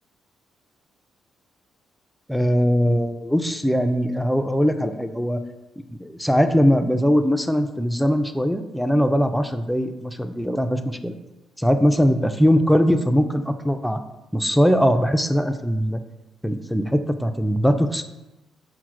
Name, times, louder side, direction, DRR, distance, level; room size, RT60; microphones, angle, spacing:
voice 1, 2.3-5.4 5.9-11.1 11.6-14.0 14.3-16.0 16.4-18.0, equal, ahead, 7 dB, 0.3 m, -21 dB
5.8 x 2.0 x 4.5 m, 1.0 s
cardioid pair, 90°, 0 cm